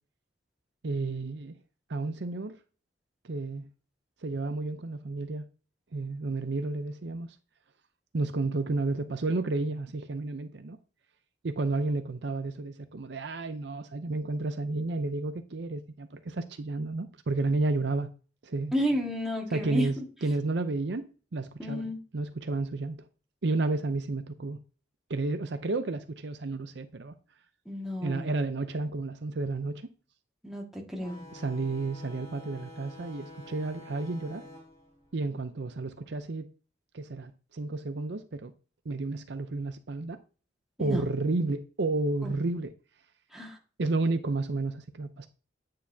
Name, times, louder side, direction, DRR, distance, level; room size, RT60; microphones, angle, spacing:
voice 1, 0.8-1.6 1.9-2.5 3.2-3.7 4.2-5.4 5.9-7.3 8.1-10.8 11.4-18.1 18.4-18.7 19.5-23.1 23.4-24.6 25.1-27.1 28.0-29.9 31.3-34.4 35.1-36.5 36.9-38.5 38.9-40.2 40.8-42.7 43.8-45.3, right 3 dB, 60° right, 0.6 m, -31 dB
voice 2, 18.7-20.0 21.6-22.0 27.7-28.3 30.4-31.2 40.8-41.0 42.2-42.3 43.3-43.6, equal, ahead, 1.7 m, -31 dB
sound 1, 31.0-36.2, left 1 dB, 20° left, 4.0 m, -48 dB
9.4 x 6.6 x 2.7 m
head